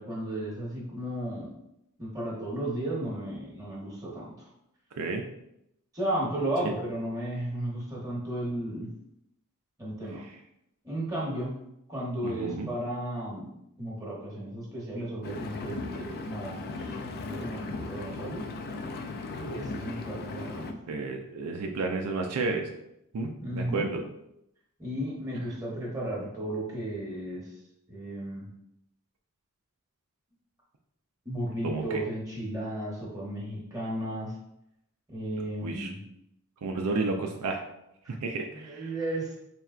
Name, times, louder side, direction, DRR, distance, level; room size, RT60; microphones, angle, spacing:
voice 1, 0.0-1.5 2.0-4.5 5.9-8.9 9.8-10.2 10.8-11.6 11.9-13.5 13.8-18.4 19.3-20.7 23.4-23.9 24.8-27.5 27.9-28.5 31.2-34.3 35.1-36.0 38.0-38.1 38.5-39.3, right 1 dB, 15° right, -4 dB, 1.0 m, -34 dB
voice 2, 12.2-12.7 20.9-22.7 23.1-24.0 31.6-32.0 35.6-35.9 36.6-37.6 38.1-38.9, right 3 dB, 80° right, 3 dB, 0.4 m, -31 dB
Engine, 15.2-20.7, left 3 dB, 45° left, 0.4 m, -37 dB
4.3 x 3.3 x 2.4 m, 0.82 s
head